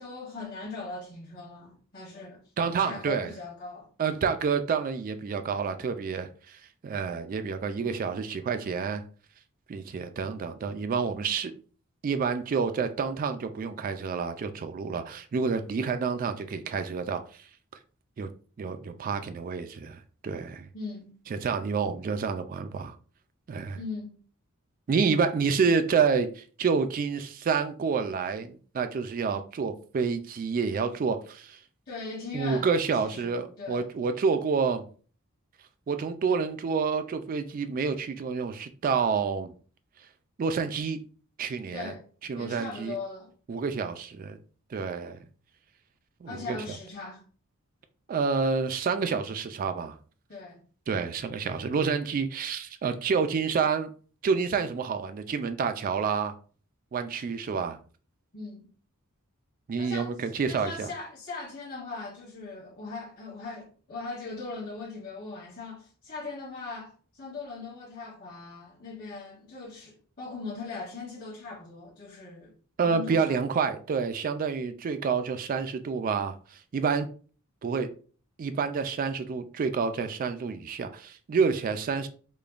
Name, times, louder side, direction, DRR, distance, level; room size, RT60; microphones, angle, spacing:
voice 1, 0.0-2.4 2.8-3.9 20.7-21.2 23.7-24.2 31.9-33.9 41.7-42.0 42.4-43.3 46.3-47.2 50.3-50.6 58.3-58.6 59.8-72.5 72.8-73.4, left 3 dB, 45° left, 1.1 m, -39 dB
voice 2, 2.6-3.3 4.0-9.0 9.7-11.5 12.0-17.4 18.2-18.3 18.6-20.7 21.3-23.0 23.5-23.8 24.9-31.6 32.3-34.8 35.9-39.5 40.4-41.0 41.4-41.9 42.2-43.0 43.5-44.4 44.7-45.2 46.2-46.6 48.1-50.0 50.9-53.9 54.2-56.3 56.9-57.8 59.7-60.9 72.8-77.1 77.6-77.9 78.4-82.1, right 5 dB, 40° right, 0.3 m, -28 dB
5.0 x 2.2 x 2.4 m
head